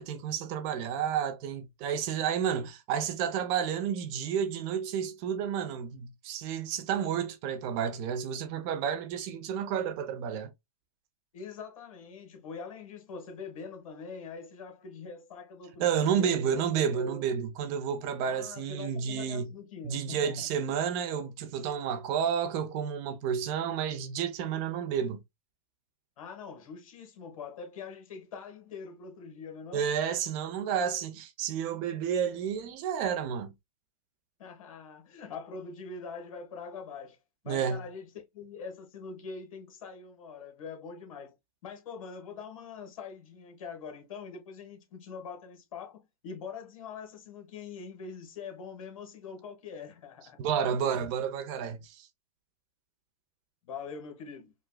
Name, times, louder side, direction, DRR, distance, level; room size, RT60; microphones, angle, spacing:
voice 1, 0.0-10.5 15.8-19.5 19.8-25.2 29.7-33.5 37.5-37.8 50.4-52.1, right 8 dB, 35° right, 0.7 m, -31 dB
voice 2, 11.3-17.3 18.2-20.6 26.2-30.2 34.4-37.2 37.4-41.4 41.6-50.4 50.7-50.8 53.6-54.5, left 5 dB, 65° left, 1.4 m, -43 dB
4.8 x 2.3 x 2.2 m
hypercardioid pair, 140°, 19 cm